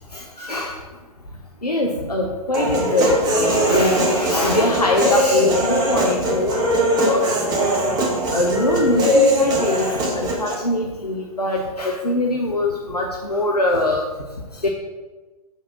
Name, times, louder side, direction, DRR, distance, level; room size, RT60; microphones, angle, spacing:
voice 1, 0.1-0.7 1.6-7.2 7.5-7.7 8.3-14.1 14.6-14.7, left 2 dB, 85° left, -1 dB, 0.9 m, -22 dB
Human voice, 2.5-10.5, equal, 20° right, 1.4 m, -20 dB
6.4 x 4.2 x 6.1 m, 1.2 s
figure-of-eight pair, 115°, 19 cm